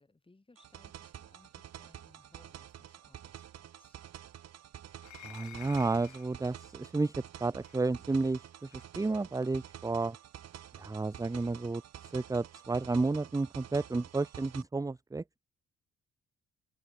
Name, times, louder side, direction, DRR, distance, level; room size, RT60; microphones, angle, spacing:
voice 1, 0.0-4.0, left 2 dB, 15° left, 5.3 m, -64 dB
sound 1, 0.6-14.6, right 10 dB, 55° right, 1.4 m, -49 dB
sound 2, 5.0-6.3 7.6-7.8 8.7-8.9, left 14 dB, 70° left, 1.0 m, -50 dB
voice 2, 5.2-10.2 10.8-11.8 12.1-15.4, right 3 dB, 10° right, 0.6 m, -32 dB
open air
cardioid pair, 90°, 30 cm